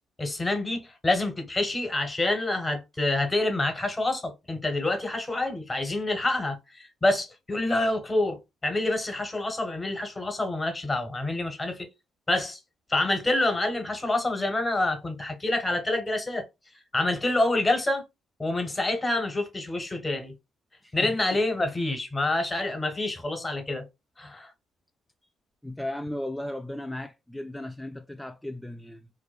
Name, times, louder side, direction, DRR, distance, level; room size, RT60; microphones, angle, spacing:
voice 1, 0.2-11.9 12.3-12.6 12.9-16.5 16.9-18.0 18.4-20.3 20.9-23.9 24.2-24.5, left 2 dB, 25° left, 1.0 m, -27 dB
voice 2, 25.6-29.1, left 1 dB, 5° left, 0.3 m, -36 dB
2.6 x 2.1 x 2.3 m
supercardioid pair, 55°, 0 cm